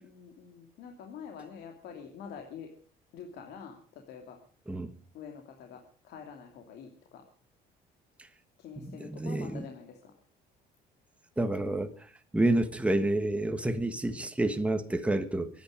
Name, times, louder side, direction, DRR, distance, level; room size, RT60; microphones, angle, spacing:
voice 1, 0.0-2.7 3.1-4.4 5.1-7.2 8.6-10.1, left 6 dB, 75° left, 2.7 m, -46 dB
voice 2, 8.8-9.7 11.4-11.9 12.3-15.5, right 1 dB, 5° right, 1.5 m, -29 dB
24.0 x 10.5 x 5.1 m
cardioid pair, 110°, 17 cm